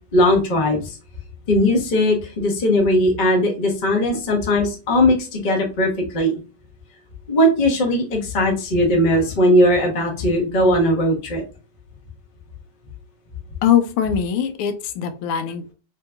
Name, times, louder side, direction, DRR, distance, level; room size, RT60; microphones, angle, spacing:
voice 1, 0.1-1.0 1.5-6.4 7.3-11.4, left 1 dB, 50° left, 1 dB, 0.5 m, -18 dB
voice 2, 13.6-15.7, left 9 dB, 80° left, 9 dB, 1.5 m, -21 dB
3.7 x 2.8 x 2.2 m, 0.33 s
omnidirectional pair, 2.4 m